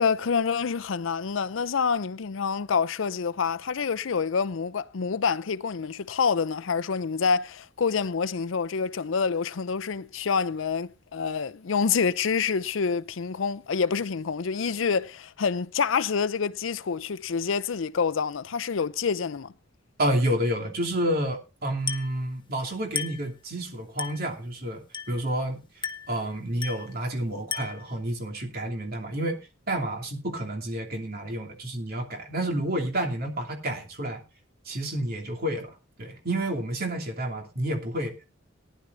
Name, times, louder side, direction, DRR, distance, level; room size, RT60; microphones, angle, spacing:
voice 1, 0.0-19.5, left 5 dB, 75° left, 0.5 m, -27 dB
voice 2, 20.0-25.6 26.1-29.4 29.7-34.2 34.6-35.7 36.0-38.1, right 1 dB, 50° right, 2.9 m, -29 dB
Glass, 21.9-22.2 23.0-23.3 24.0-24.3 24.9-25.3 25.8-26.2 26.6-26.9 27.5-27.9, left 7 dB, 25° left, 0.9 m, -34 dB
18.5 x 11.0 x 2.6 m
head